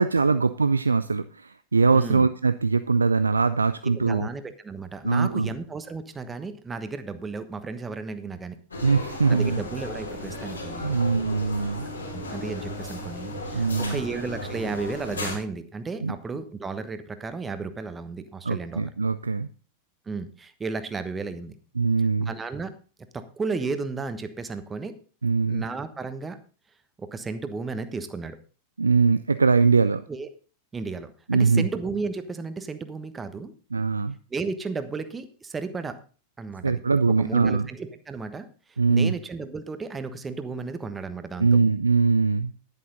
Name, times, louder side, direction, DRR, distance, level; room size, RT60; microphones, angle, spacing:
voice 1, 0.0-4.3 5.0-5.5 8.8-9.6 10.8-11.9 13.5-14.0 16.0-16.1 18.4-19.5 21.8-22.3 25.2-25.6 28.8-30.0 31.3-31.7 33.7-34.1 36.6-37.7 38.8-39.2 41.4-42.5, right 4 dB, 75° right, 12 dB, 0.4 m, -22 dB
voice 2, 1.9-2.3 3.8-8.6 9.3-11.0 12.1-18.9 20.1-21.6 22.2-22.7 23.1-25.0 25.5-26.4 27.0-28.4 30.1-30.3 30.7-33.5 34.3-36.0 36.4-36.8 37.2-38.5 38.9-41.5, right 4 dB, 15° right, 10 dB, 1.2 m, -33 dB
sound 1, 8.7-15.4, left 1 dB, 80° left, 5.2 m, -35 dB
11.0 x 10.5 x 3.9 m, 0.38 s
figure-of-eight pair, 90°, 0 cm